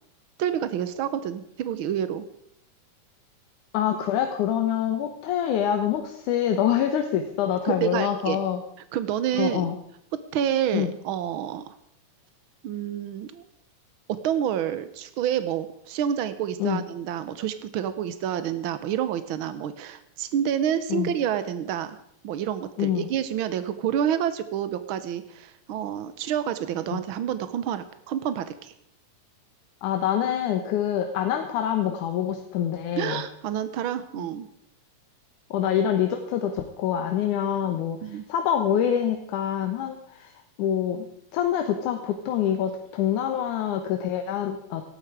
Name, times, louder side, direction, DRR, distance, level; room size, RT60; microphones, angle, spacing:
voice 1, 0.4-2.3 7.8-8.4 8.9-9.7 10.1-11.7 12.6-13.4 14.1-22.0 22.2-28.7 33.0-34.5 38.0-38.2, right 9 dB, 90° right, 12 dB, 1.1 m, -28 dB
voice 2, 3.7-8.6 9.3-9.8 10.7-10.9 16.6-16.8 20.9-21.1 22.8-23.1 26.9-27.0 29.8-33.2 34.2-34.3 35.5-40.3 40.6-41.1 41.3-44.8, left 9 dB, 85° left, 5 dB, 2.5 m, -26 dB
17.5 x 12.5 x 4.9 m, 0.72 s
omnidirectional pair, 3.5 m